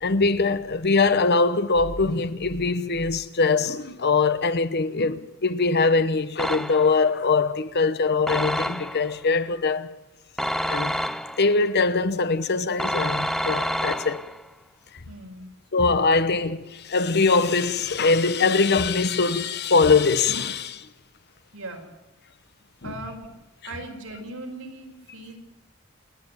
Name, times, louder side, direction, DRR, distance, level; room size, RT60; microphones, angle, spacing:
voice 1, 0.0-9.9 10.7-11.0 11.4-14.2 15.7-20.9 22.8-22.9, left 4 dB, 50° left, 1.0 m, -22 dB
sound 1, 6.4-7.1 8.3-9.2 10.4-11.6 12.8-14.5, equal, ahead, 0.6 m, -28 dB
voice 2, 15.1-15.5 21.5-21.9 22.8-23.4 23.6-25.4, right 2 dB, 80° right, 5.0 m, -39 dB
28.0 x 10.5 x 9.1 m
head